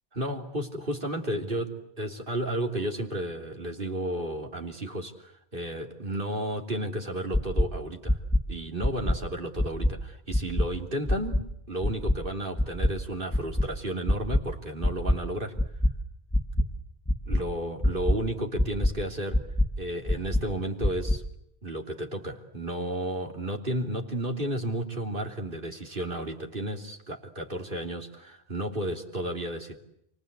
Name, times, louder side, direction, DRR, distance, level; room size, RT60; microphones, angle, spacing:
voice 1, 0.1-8.2 8.5-15.5 17.3-19.5 19.8-21.2 21.6-29.8, right 1 dB, 55° right, 2 dB, 3.5 m, -33 dB
sound 1, 7.3-7.6 8.1-8.4 8.8-9.1 9.6-9.9 10.3-10.6 11.1-11.4 11.8-12.1 12.6-12.9 13.3-13.6 14.0-14.4 14.8-15.1 15.6-15.9 16.3-16.6 17.1-17.4 17.8-18.1 18.6-18.9 19.3-19.7 20.1-20.4 20.8-21.2, left 1 dB, 10° left, 2.1 m, -23 dB
30.0 x 24.0 x 8.3 m, 0.77 s
omnidirectional pair, 1.1 m